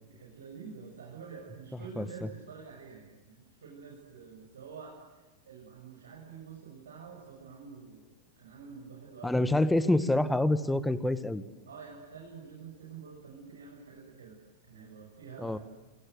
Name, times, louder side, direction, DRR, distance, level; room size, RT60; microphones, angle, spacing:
voice 1, 0.1-8.1 8.4-9.5 11.6-14.4 14.6-15.6, right 5 dB, 65° right, 0 dB, 6.7 m, -48 dB
voice 2, 9.2-11.4 15.4-15.6, left 1 dB, 5° left, 14 dB, 1.7 m, -26 dB
29.5 x 25.0 x 8.0 m, 1.2 s
figure-of-eight pair, 90°, 0 cm